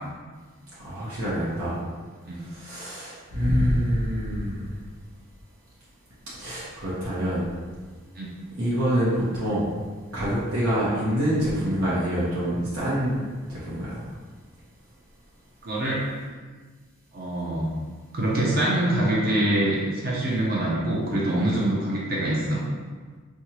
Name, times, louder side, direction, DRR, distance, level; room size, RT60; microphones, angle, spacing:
voice 1, 0.8-1.8 2.5-4.7 6.4-7.5 8.6-9.7 10.1-13.2 13.5-14.0, equal, 80° right, -9 dB, 1.0 m, -26 dB
voice 2, 15.6-16.0 17.1-17.7 18.1-22.6, right 1 dB, 45° right, -5 dB, 0.7 m, -24 dB
4.3 x 2.3 x 3.0 m, 1.4 s
head